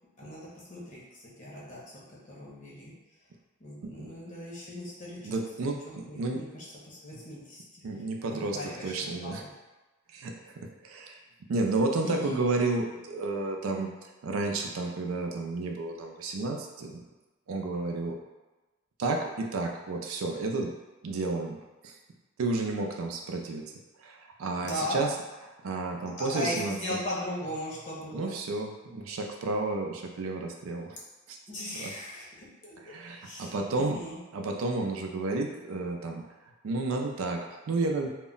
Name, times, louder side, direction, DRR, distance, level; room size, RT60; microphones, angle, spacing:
voice 1, 0.2-2.9 3.6-5.2 6.0-7.8 8.3-9.3 12.0-12.4 24.6-25.0 26.2-28.3 31.5-32.7 33.2-34.2, left 1 dB, 40° left, -6 dB, 0.7 m, -38 dB
voice 2, 5.2-6.4 7.8-9.4 10.1-11.1 11.5-17.0 17.5-18.2 19.0-20.7 21.0-21.6 21.8-22.0 22.4-23.6 24.0-25.1 25.6-27.0 28.1-31.0 31.3-31.4 31.8-31.9 32.8-34.0 34.3-36.2 36.6-38.1, right 3 dB, 85° right, 2 dB, 0.4 m, -31 dB
2.2 x 2.0 x 3.7 m, 1.1 s
head